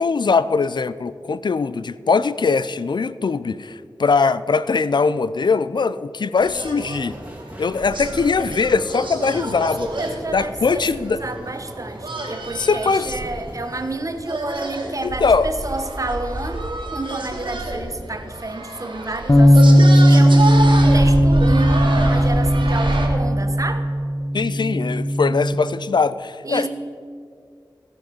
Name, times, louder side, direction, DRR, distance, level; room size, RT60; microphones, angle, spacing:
voice 1, 0.0-7.1 7.6-9.9 10.3-11.2 12.5-13.2 15.0-15.5 24.3-26.7, left 4 dB, 65° left, 15 dB, 0.4 m, -21 dB
sound 1, 6.4-23.1, right 1 dB, 80° right, 1.8 m, -28 dB
sound 2, 7.1-13.9, right 1 dB, 15° right, 2.2 m, -40 dB
voice 2, 9.2-23.9 26.4-26.7, right 2 dB, 40° right, 8 dB, 1.0 m, -30 dB
sound 3, 19.3-25.5, equal, 35° left, 0.8 m, -16 dB
15.5 x 5.7 x 5.9 m, 2.2 s
wide cardioid pair, 50°, 8 cm